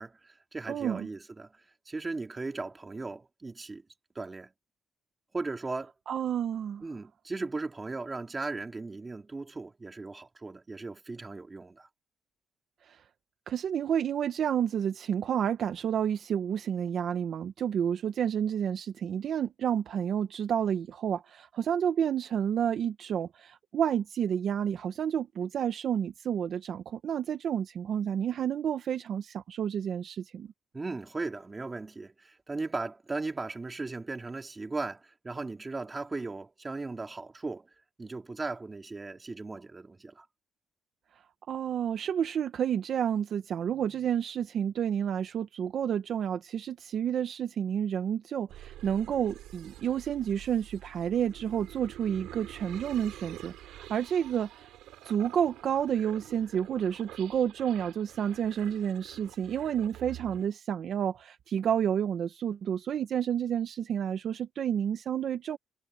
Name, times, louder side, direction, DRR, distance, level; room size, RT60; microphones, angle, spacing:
voice 1, 0.0-1.5 1.9-3.8 4.1-4.5 5.3-5.9 6.8-11.9 30.7-37.7 38.0-40.2 43.7-44.1, right 3 dB, 15° right, 2.7 m, -37 dB
voice 2, 0.7-1.1 6.1-6.8 12.8-13.0 13.5-30.5 41.5-54.7 55.0-65.6, right 9 dB, 45° right, 0.9 m, -30 dB
sound 1, 48.5-60.5, right 14 dB, 90° right, 3.3 m, -48 dB
cardioid pair, 160°, 0 cm